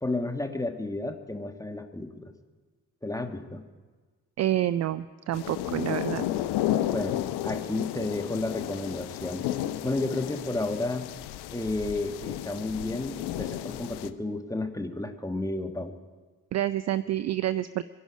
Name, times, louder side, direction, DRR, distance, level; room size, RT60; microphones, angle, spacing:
voice 1, 0.0-2.3 3.0-3.6 6.9-9.4 9.8-11.1 11.5-15.9, left 2 dB, 5° left, 6 dB, 1.3 m, -32 dB
voice 2, 4.4-6.2 16.5-17.8, right 13 dB, 40° right, 15 dB, 0.4 m, -28 dB
sound 1, 5.3-14.1, left 12 dB, 60° left, 0.7 m, -33 dB
23.5 x 11.0 x 5.1 m, 1.4 s
figure-of-eight pair, 40°, 45 cm